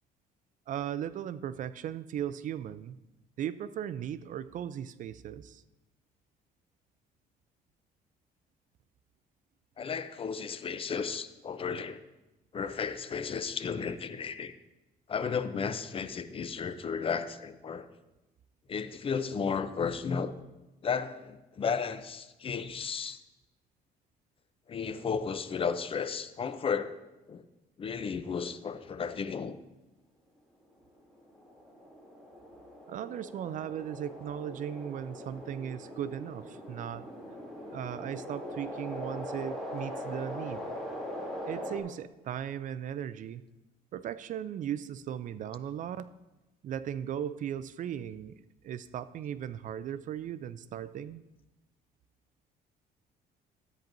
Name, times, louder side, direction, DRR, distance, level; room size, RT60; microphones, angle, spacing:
voice 1, 0.7-3.0 3.4-5.6 32.9-37.1 37.7-40.7 41.4-43.4 43.9-46.1 46.6-48.3 48.6-51.2, right 10 dB, 50° right, 0.4 m, -37 dB
voice 2, 9.8-12.0 12.5-14.5 15.1-17.9 18.7-20.3 20.8-23.2 24.7-26.9 27.3-27.4 27.8-29.6, left 6 dB, 35° left, 0.5 m, -33 dB
sound 1, 31.0-41.8, equal, ahead, 2.8 m, -41 dB
13.5 x 8.8 x 2.6 m
cardioid pair, 110°, 17 cm